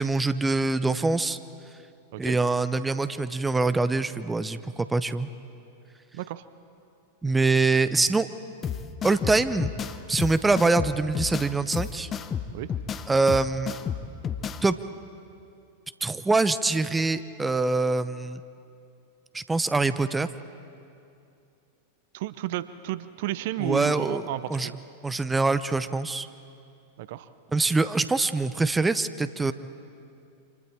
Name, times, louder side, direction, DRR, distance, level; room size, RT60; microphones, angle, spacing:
voice 1, 0.0-1.4 2.2-5.3 7.2-8.3 9.0-9.7 10.1-12.1 13.1-13.7 14.6-14.8 16.0-18.4 19.3-20.3 23.6-24.2 24.5-24.7 25.0-26.3 27.5-29.5, right 3 dB, 10° right, 13 dB, 0.7 m, -24 dB
voice 2, 6.1-6.4 12.5-12.7 22.1-24.7 27.0-27.3, right 14 dB, 55° right, 15 dB, 0.7 m, -32 dB
sound 1, 8.6-14.6, left 7 dB, 25° left, 1.0 m, -32 dB
28.5 x 26.0 x 4.5 m, 2.6 s
figure-of-eight pair, 90°, 0 cm